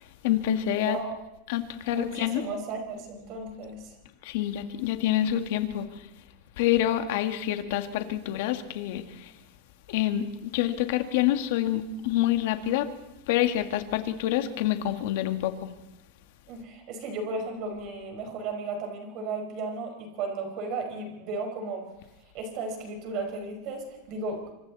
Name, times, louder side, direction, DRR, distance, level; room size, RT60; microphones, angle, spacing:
voice 1, 0.2-1.0 1.5-2.4 4.2-6.0 6.6-9.3 9.9-12.9 13.3-15.7, left 12 dB, 60° left, 7 dB, 2.1 m, -27 dB
voice 2, 1.9-4.0 16.5-21.9 22.3-24.4, right 3 dB, 40° right, 4 dB, 5.2 m, -34 dB
27.0 x 25.5 x 4.3 m, 0.94 s
supercardioid pair, 165°, 0 cm